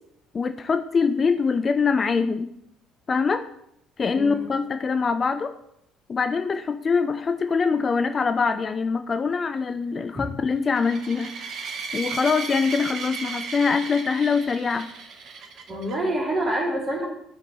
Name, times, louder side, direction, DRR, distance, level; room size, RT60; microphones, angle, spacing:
voice 1, 0.3-2.5 3.1-3.4 4.0-5.5 6.1-11.3 11.9-14.9, left 5 dB, 30° left, 8 dB, 0.5 m, -23 dB
voice 2, 4.1-4.4 10.1-10.3 15.7-17.1, right 1 dB, 30° right, -1 dB, 2.8 m, -27 dB
sound 1, 10.7-15.9, right 5 dB, 50° right, 0.9 m, -35 dB
13.0 x 5.1 x 3.1 m, 0.75 s
figure-of-eight pair, 55°, 0 cm